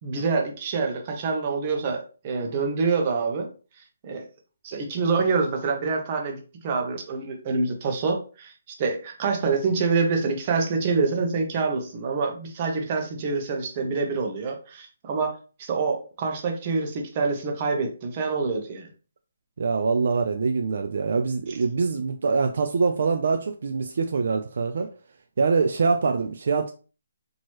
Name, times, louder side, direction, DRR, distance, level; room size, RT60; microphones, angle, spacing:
voice 1, 0.0-3.5 4.0-4.2 4.6-18.9 21.5-21.6, right 4 dB, 30° right, 1.0 m, -26 dB
voice 2, 19.6-24.9 25.4-26.7, right 4 dB, 65° right, 0.4 m, -24 dB
4.4 x 3.0 x 3.0 m
hypercardioid pair, 160°, 0 cm